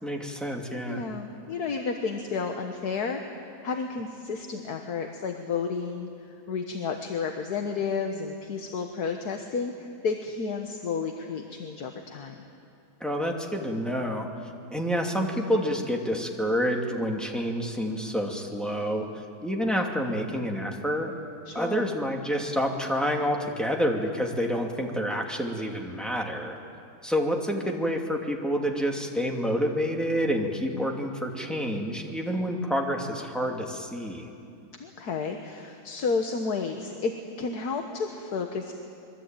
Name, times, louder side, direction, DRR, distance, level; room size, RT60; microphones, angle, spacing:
voice 1, 0.0-1.0 13.0-14.3 14.7-19.1 19.4-21.1 21.5-26.6 27.0-34.3, equal, ahead, 0 dB, 2.4 m, -28 dB
voice 2, 0.9-3.2 3.6-6.1 6.5-12.4 21.5-21.9 30.7-30.9 34.8-37.1 37.4-38.7, left 5 dB, 70° left, 4 dB, 1.8 m, -31 dB
25.5 x 22.5 x 9.0 m, 2.6 s
omnidirectional pair, 1.7 m